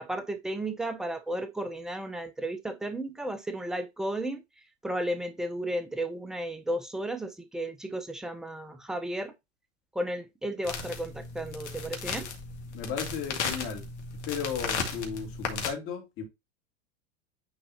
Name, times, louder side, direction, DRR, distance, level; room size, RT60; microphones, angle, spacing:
voice 1, 0.0-4.4 4.8-9.3 9.9-12.3, right 1 dB, ahead, 0.9 m, -33 dB
sound 1, 10.6-15.7, left 5 dB, 65° left, 1.9 m, -35 dB
voice 2, 12.7-13.9 14.3-16.2, left 6 dB, 35° left, 2.5 m, -35 dB
9.6 x 3.9 x 2.8 m
figure-of-eight pair, 85°, 37 cm